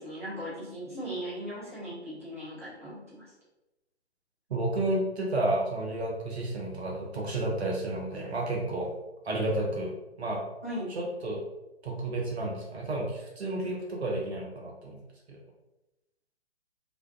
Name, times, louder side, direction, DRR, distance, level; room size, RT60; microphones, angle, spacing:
voice 1, 0.0-3.3 10.6-10.9, equal, 15° right, -9 dB, 0.4 m, -38 dB
voice 2, 4.5-8.9 9.2-9.9 10.2-10.4 10.9-11.4 11.8-15.0 15.3-15.4, right 1 dB, 65° right, -1 dB, 0.7 m, -31 dB
2.5 x 2.2 x 2.2 m, 0.96 s
figure-of-eight pair, 135°, 34 cm